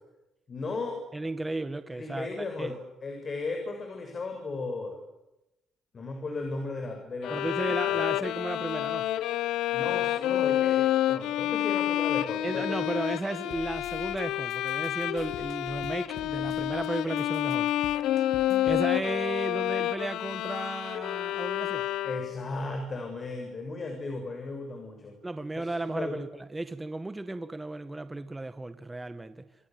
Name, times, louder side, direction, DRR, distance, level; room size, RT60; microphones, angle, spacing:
voice 1, 0.5-1.0 1.9-5.0 5.9-7.4 7.9-8.0 9.7-12.6 22.0-25.1 25.5-26.2, left 3 dB, 40° left, 6.8 m, -36 dB
voice 2, 1.1-2.7 7.3-9.1 12.4-17.7 18.6-21.9 25.2-29.4, right 2 dB, 15° right, 1.6 m, -34 dB
Bowed string instrument, 7.2-22.5, left 13 dB, 90° left, 0.9 m, -29 dB
sound 1, 13.5-14.2 14.5-16.9 17.2-18.8, left 7 dB, 60° left, 2.2 m, -47 dB
27.0 x 27.0 x 7.8 m
cardioid pair, 90°, 0 cm